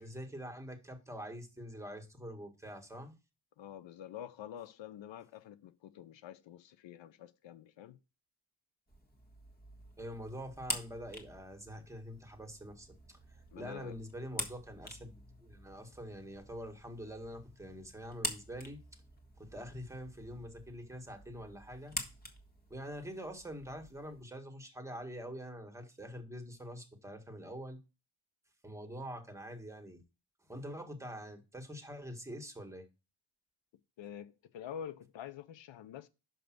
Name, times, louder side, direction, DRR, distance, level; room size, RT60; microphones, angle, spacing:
voice 1, 0.0-3.1 10.0-18.8 19.4-22.0 22.7-27.8 28.6-30.0 30.5-32.9, equal, 5° right, 1.8 m, -45 dB
voice 2, 3.6-8.0 13.5-14.0 34.0-36.1, left 9 dB, 80° left, 0.7 m, -47 dB
sound 1, 8.9-24.2, left 1 dB, 20° left, 1.6 m, -46 dB
6.1 x 5.2 x 6.0 m
cardioid pair, 90°, 44 cm